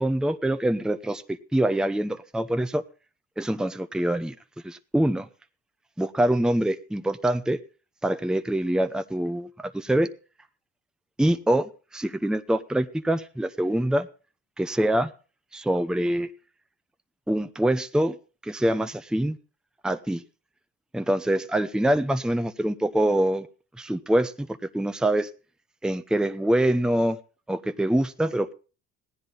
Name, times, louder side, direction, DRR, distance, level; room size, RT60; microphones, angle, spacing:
voice 1, 0.0-2.8 3.4-4.3 4.6-5.3 6.0-7.6 8.0-10.1 11.2-14.1 14.6-15.1 15.5-16.3 17.3-18.2 18.4-19.4 19.8-20.2 20.9-23.5 23.8-24.5 24.7-25.3 25.8-27.2 27.5-28.5, right 1 dB, ahead, 9 dB, 0.7 m, -25 dB
16.5 x 10.0 x 4.0 m, 0.35 s
cardioid pair, 90°, 30 cm